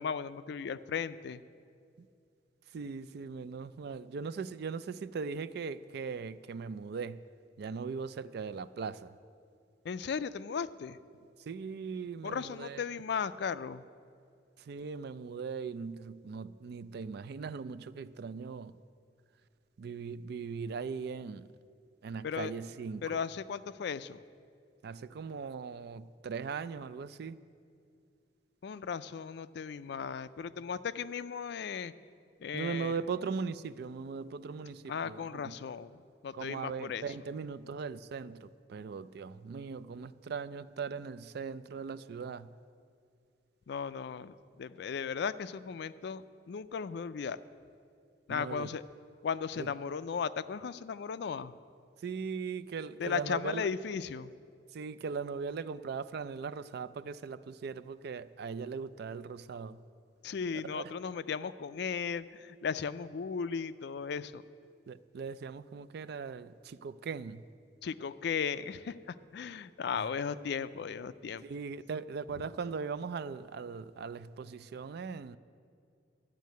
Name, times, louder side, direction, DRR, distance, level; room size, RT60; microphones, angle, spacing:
voice 1, 0.0-1.4 9.8-11.0 12.2-13.8 22.2-22.5 23.0-24.2 28.6-31.9 32.4-33.0 34.9-36.0 36.2-37.1 43.7-47.4 48.3-48.8 49.2-51.5 53.0-54.3 60.2-64.4 67.8-68.9 69.3-71.4, left 6 dB, 65° left, 15 dB, 0.4 m, -36 dB
voice 2, 2.7-7.2 7.6-9.1 11.5-12.8 14.6-18.8 19.8-21.5 22.0-23.2 24.8-27.4 32.5-35.5 36.3-42.5 48.3-48.7 49.6-49.7 52.0-53.7 54.7-59.8 60.5-60.9 64.9-67.4 70.0-70.1 71.4-75.4, right 5 dB, 60° right, 15 dB, 0.4 m, -39 dB
12.0 x 6.5 x 9.3 m, 2.4 s
head